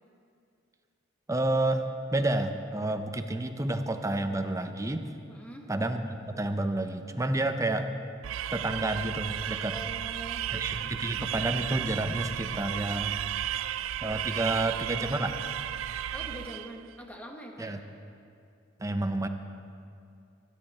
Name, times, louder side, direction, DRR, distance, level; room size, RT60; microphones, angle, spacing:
voice 1, 1.3-5.1 5.7-7.9 8.5-9.7 10.5-13.2 14.0-15.3 17.6-17.8 18.8-19.3, right 2 dB, 15° right, 7 dB, 0.7 m, -30 dB
voice 2, 5.3-5.7 9.7-10.4 16.1-17.8, right 1 dB, 5° left, 1 dB, 1.4 m, -43 dB
sound 1, 8.2-16.8, right 11 dB, 85° right, 0.3 m, -34 dB
24.0 x 10.5 x 4.3 m, 2.5 s
head